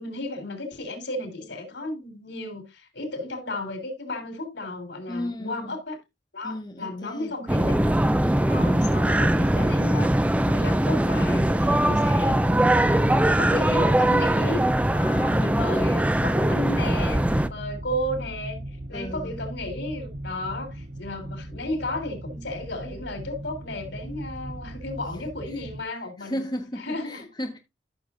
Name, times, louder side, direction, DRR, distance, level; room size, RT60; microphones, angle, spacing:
voice 1, 0.0-6.0 6.3-7.9 8.4-12.4 12.8-14.6 14.9-18.6 18.9-26.4 26.8-27.2, left 1 dB, 90° left, 3.4 m, -34 dB
voice 2, 5.1-5.8 6.4-7.3 8.2-8.8 15.0-15.6 18.9-19.4 25.5-25.6 26.2-27.6, equal, 25° left, 1.2 m, -35 dB
sound 1, 7.5-17.5, right 1 dB, 10° right, 0.4 m, -21 dB
sound 2, 14.7-25.8, right 1 dB, 40° right, 0.9 m, -38 dB
14.0 x 6.5 x 2.5 m
head